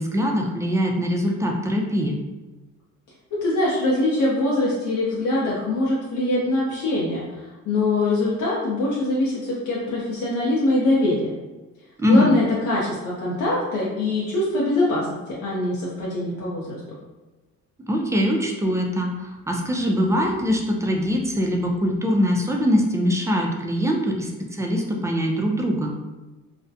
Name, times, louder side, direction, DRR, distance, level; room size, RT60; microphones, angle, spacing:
voice 1, 0.0-2.2 12.0-12.3 17.9-25.9, equal, 10° right, 0 dB, 0.4 m, -22 dB
voice 2, 3.4-11.2 12.0-16.8, left 2 dB, 70° left, -6 dB, 0.6 m, -23 dB
2.4 x 2.1 x 2.6 m, 1.1 s
cardioid pair, 90°, 30 cm